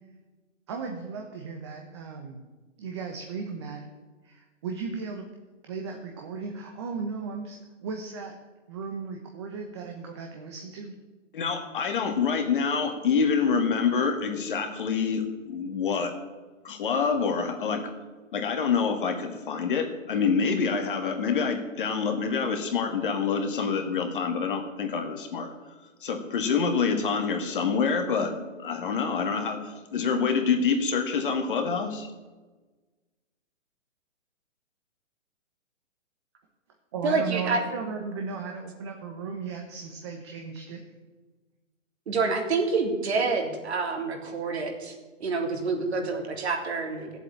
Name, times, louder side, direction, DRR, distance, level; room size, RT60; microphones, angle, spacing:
voice 1, 0.7-2.5 2.8-3.9 4.2-5.3 5.7-8.3 8.7-10.9 36.9-40.8, right 5 dB, 20° right, 2 dB, 1.0 m, -36 dB
voice 2, 11.3-16.1 16.6-17.9 18.3-25.5 26.0-32.1, left 5 dB, 40° left, 5 dB, 1.9 m, -26 dB
voice 3, 37.0-37.6 42.1-45.0 45.2-47.2, right 4 dB, 55° right, 1 dB, 3.4 m, -27 dB
14.5 x 8.0 x 8.8 m, 1.3 s
hypercardioid pair, 170°, 38 cm